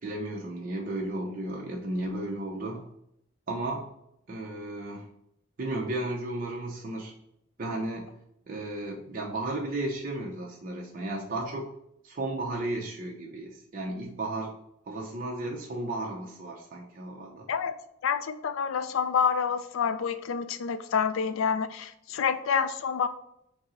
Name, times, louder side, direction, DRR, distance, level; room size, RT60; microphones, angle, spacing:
voice 1, 0.0-2.9 3.5-3.9 4.3-5.1 5.6-7.1 7.6-8.1 8.5-11.7 12.0-14.5 14.9-17.5, right 2 dB, 40° right, -1 dB, 0.5 m, -34 dB
voice 2, 18.0-23.1, left 6 dB, 70° left, 11 dB, 0.4 m, -28 dB
5.2 x 2.0 x 3.7 m, 0.76 s
head